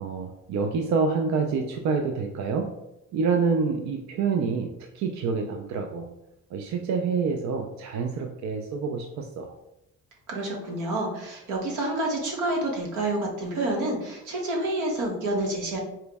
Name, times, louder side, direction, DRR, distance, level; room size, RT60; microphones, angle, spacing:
voice 1, 0.0-2.7 3.1-6.1 6.5-9.5, right 5 dB, 65° right, 4 dB, 0.4 m, -27 dB
voice 2, 10.3-15.8, right 1 dB, 90° right, -1 dB, 1.1 m, -28 dB
4.3 x 2.0 x 3.4 m, 0.88 s
cardioid pair, 90°, 30 cm